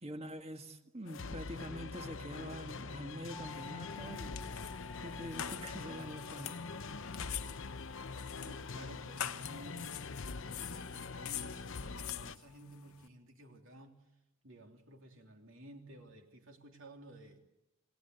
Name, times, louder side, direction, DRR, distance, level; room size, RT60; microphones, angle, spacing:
voice 1, 0.0-4.4 5.0-6.6, equal, 30° right, 6 dB, 1.7 m, -45 dB
sound 1, 1.1-12.4, left 4 dB, 60° left, 0.8 m, -44 dB
sound 2, 3.3-13.1, left 4 dB, 5° left, 1.4 m, -56 dB
sound 3, 3.9-13.1, left 11 dB, 80° left, 1.0 m, -46 dB
voice 2, 8.4-9.9 10.5-14.1 14.4-17.4, right 1 dB, 60° right, 3 dB, 3.3 m, -54 dB
28.0 x 19.5 x 8.1 m, 0.92 s
head